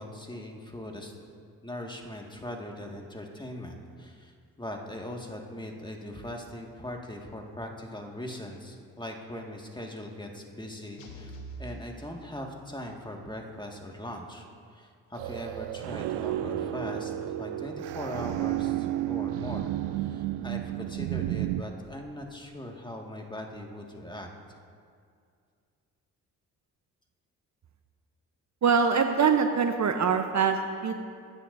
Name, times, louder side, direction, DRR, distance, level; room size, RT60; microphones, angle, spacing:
voice 1, 0.0-1.3 1.6-4.3 4.6-11.3 11.6-14.5 14.7-17.1 17.4-24.3, left 1 dB, 10° left, 1 dB, 2.0 m, -40 dB
sound 1, 11.0-12.9, right 2 dB, 80° left, 1.4 m, -45 dB
sound 2, 15.2-21.6, right 14 dB, 70° right, 0.6 m, -32 dB
voice 2, 28.6-30.9, right 6 dB, 40° right, 6 dB, 0.9 m, -24 dB
22.0 x 10.0 x 2.7 m, 2.2 s
hypercardioid pair, 45°, 42 cm